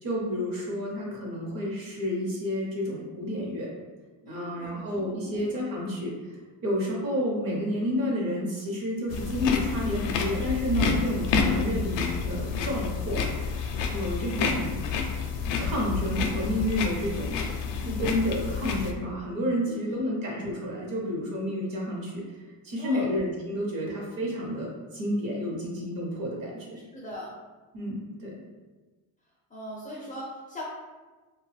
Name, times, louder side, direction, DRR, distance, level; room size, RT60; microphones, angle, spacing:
voice 1, 0.0-3.7 4.2-6.2 6.6-13.6 13.9-14.7 15.6-22.4 22.6-26.8 27.7-28.3, equal, 50° right, -2 dB, 0.9 m, -30 dB
voice 2, 4.2-5.5 19.6-20.0 22.8-23.1 26.9-27.4 29.5-30.6, left 1 dB, 20° left, -6 dB, 0.4 m, -40 dB
sound 1, 9.1-18.9, left 5 dB, 80° left, 0.5 m, -29 dB
2.7 x 2.3 x 3.2 m, 1.3 s
cardioid pair, 150°, 43 cm